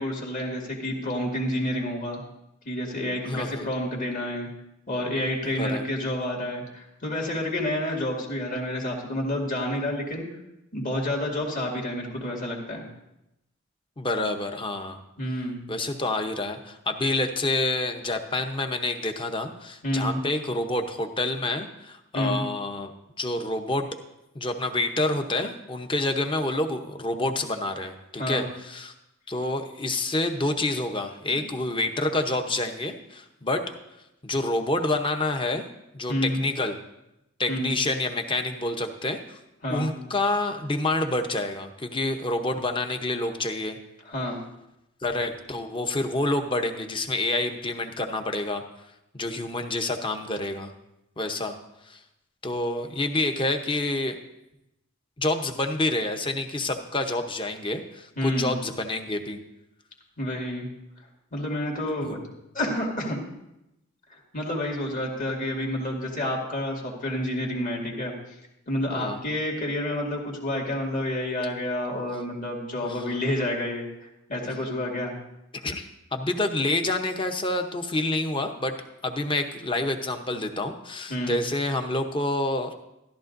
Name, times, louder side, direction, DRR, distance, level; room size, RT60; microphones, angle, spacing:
voice 1, 0.0-2.2 2.6-4.5 4.9-10.3 10.7-12.9 15.2-15.6 19.8-20.2 22.1-22.4 28.2-28.4 31.3-31.4 36.1-36.4 37.5-37.8 39.6-39.9 44.0-44.4 58.2-58.5 60.2-60.7 61.3-62.2 62.5-63.2 64.1-68.4 68.7-75.2 81.1-81.4, left 1 dB, 40° left, -1 dB, 2.2 m, -29 dB
voice 2, 3.3-3.7 5.5-5.8 14.0-15.0 15.7-22.9 23.2-23.9 24.3-28.9 29.3-33.6 34.2-35.6 35.9-36.8 37.4-39.4 39.7-43.8 45.0-48.6 49.1-50.7 51.2-51.6 51.9-52.0 52.4-54.2 55.2-59.4 62.0-62.2 68.9-69.2 72.8-73.1 75.5-78.7 79.0-82.7, left 2 dB, 25° left, 5 dB, 0.8 m, -28 dB
14.0 x 12.5 x 2.6 m, 0.88 s
head